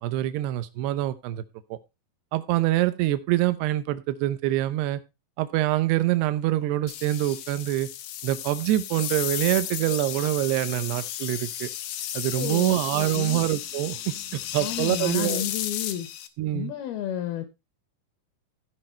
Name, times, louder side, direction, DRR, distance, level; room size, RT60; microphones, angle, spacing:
voice 1, 0.0-1.4 1.7-1.8 2.3-5.0 5.4-7.9 8.2-11.7 12.1-15.4 16.4-16.7, right 15 dB, 75° right, 13 dB, 2.7 m, -25 dB
sound 1, 6.9-16.3, left 11 dB, 90° left, 1.9 m, -33 dB
voice 2, 12.4-13.4 14.6-16.1 16.5-17.4, left 10 dB, 75° left, 10 dB, 2.5 m, -31 dB
15.0 x 5.2 x 4.3 m, 0.26 s
omnidirectional pair, 5.0 m